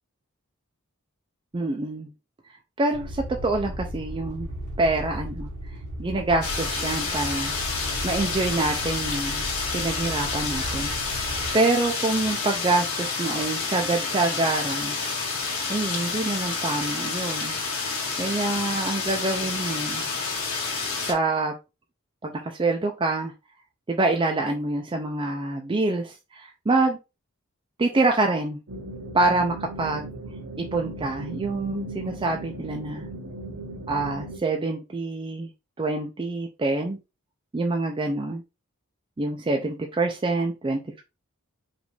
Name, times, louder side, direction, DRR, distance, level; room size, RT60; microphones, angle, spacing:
voice 1, 1.5-2.1 2.8-4.5 4.8-5.5 6.0-7.5 8.0-9.4 9.7-11.2 11.5-15.0 15.7-17.9 18.2-20.1 21.1-21.5 22.2-23.3 23.9-27.0 27.8-28.6 29.1-30.1 30.6-33.1 33.9-35.5 35.8-37.0 37.5-38.4 39.2-41.0, right 2 dB, 25° right, 2 dB, 0.4 m, -26 dB
sound 1, 2.9-11.5, equal, 90° right, 1.4 m, -35 dB
sound 2, 6.4-21.1, left 4 dB, 75° left, 1.6 m, -29 dB
sound 3, 28.7-34.4, right 2 dB, 65° right, 0.8 m, -37 dB
5.0 x 2.6 x 3.2 m, 0.26 s
head